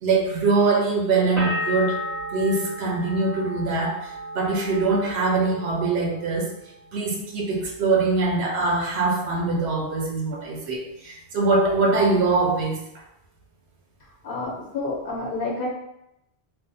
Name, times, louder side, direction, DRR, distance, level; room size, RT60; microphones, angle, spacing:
voice 1, 0.0-2.0 2.3-6.5 6.9-12.8, right 3 dB, 85° right, 0 dB, 1.0 m, -23 dB
sound 1, 1.4-7.0 7.3-8.0, left 1 dB, 35° right, 1.4 m, -34 dB
voice 2, 14.2-15.7, left 2 dB, 60° left, -3 dB, 1.0 m, -29 dB
2.7 x 2.1 x 3.9 m, 0.83 s
omnidirectional pair, 1.1 m